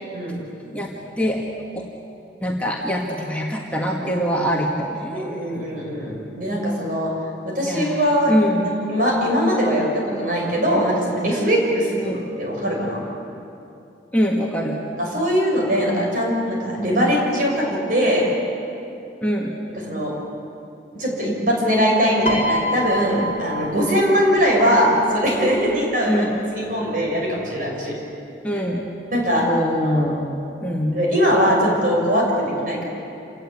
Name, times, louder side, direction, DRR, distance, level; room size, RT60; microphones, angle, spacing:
voice 1, 2.4-5.4 7.7-8.7 12.0-12.2 14.1-14.8 19.2-19.5 26.1-26.3 28.4-28.8 29.5-31.0, equal, 5° left, -2 dB, 1.7 m, -23 dB
voice 2, 5.1-7.1 7.4-8.3 8.9-12.0 12.4-13.0 15.0-18.3 19.8-20.1 20.9-26.2 26.5-28.0 28.5-28.6 29.1-29.5 29.8-30.1 30.9-32.8, equal, 45° right, -2 dB, 6.4 m, -21 dB
Piano, 22.3-24.6 25.7-25.9, right 1 dB, 35° left, 1.4 m, -27 dB
28.0 x 18.5 x 8.4 m, 2.7 s
head